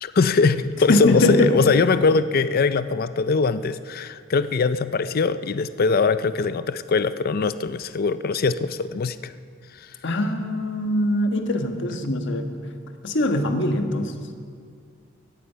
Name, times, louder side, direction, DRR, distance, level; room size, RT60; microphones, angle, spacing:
voice 1, 0.0-9.3 9.8-9.9, left 4 dB, 50° left, 13 dB, 0.5 m, -22 dB
voice 2, 0.9-1.5 10.0-12.5 13.0-14.1, left 1 dB, 65° left, 5 dB, 1.5 m, -22 dB
17.0 x 14.5 x 5.7 m, 2.2 s
head